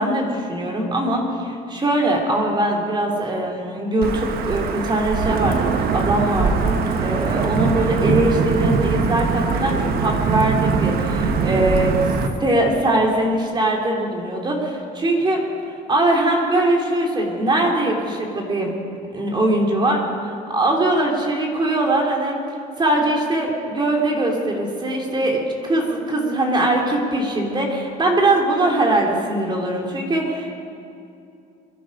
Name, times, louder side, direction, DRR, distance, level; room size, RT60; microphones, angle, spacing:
voice 1, 0.0-12.0 12.4-15.4 15.9-18.7 19.1-22.4 22.8-30.6, right 1 dB, 25° right, 0 dB, 3.0 m, -21 dB
Wind / Thunder / Rain, 4.0-12.3, right 5 dB, 65° right, 1.3 m, -22 dB
23.5 x 11.0 x 5.3 m, 2.6 s
cardioid pair, 110°, 17 cm